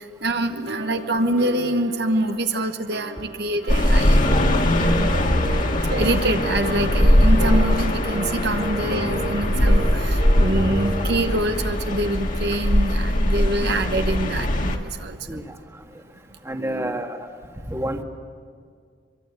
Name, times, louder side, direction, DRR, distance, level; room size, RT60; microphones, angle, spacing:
voice 1, 0.0-4.2 4.7-5.2 6.0-15.4 16.6-17.0, right 1 dB, 60° right, 6 dB, 1.1 m, -25 dB
sound 1, 0.5-11.5, right 1 dB, 85° right, 3.1 m, -36 dB
sound 2, 3.7-14.8, left 1 dB, 45° left, 2.1 m, -20 dB
sound 3, 4.3-4.6 4.8-5.1 5.4-6.7 7.0-7.3 7.5-7.8 8.0-8.3 8.6-8.9 9.1-9.4 9.7-9.9 10.2-10.5 10.7-11.0, right 2 dB, 35° right, 2.6 m, -33 dB
voice 2, 16.4-17.3 17.7-18.0, right 1 dB, 15° right, 4 dB, 1.5 m, -28 dB
24.5 x 23.5 x 8.2 m, 2.1 s
head